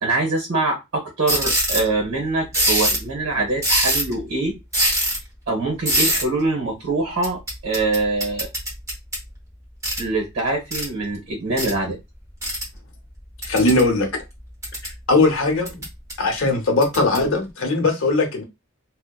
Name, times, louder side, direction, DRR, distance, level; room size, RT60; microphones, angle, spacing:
voice 1, 0.0-4.5 5.5-8.5 10.0-12.0, right 2 dB, 65° right, 0.9 m, -24 dB
sound 1, 1.3-1.9 2.5-3.1 3.6-4.2 4.7-5.2 5.8-6.2 7.2-9.2 9.8-10.0 10.7-10.8 11.6-11.7 12.4-12.6 13.4-13.9 14.4-14.9 15.6-16.1 16.8-17.2, right 1 dB, 15° right, 0.8 m, -22 dB
voice 2, 13.4-14.1 15.1-15.7 16.2-18.4, left 2 dB, 65° left, 0.7 m, -19 dB
2.7 x 2.1 x 2.2 m
head